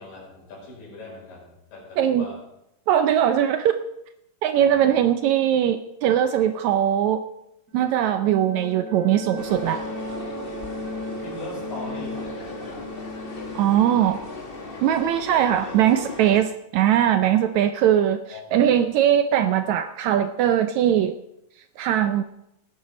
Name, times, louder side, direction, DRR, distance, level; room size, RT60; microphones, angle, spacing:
voice 1, 0.0-2.4 4.6-4.9 11.2-12.8 15.4-15.6 18.3-18.6, left 2 dB, 90° left, -3 dB, 6.8 m, -40 dB
voice 2, 2.9-3.7 4.4-7.2 7.7-9.9 13.5-14.2 14.8-18.2 18.5-21.1 21.8-22.2, right 10 dB, 80° right, 10 dB, 1.7 m, -20 dB
sound 1, 7.7-16.2, left 1 dB, 50° right, 5.2 m, -37 dB
sound 2, 9.4-16.4, left 3 dB, 60° left, 0.5 m, -38 dB
17.5 x 10.0 x 5.2 m, 0.83 s
omnidirectional pair, 3.8 m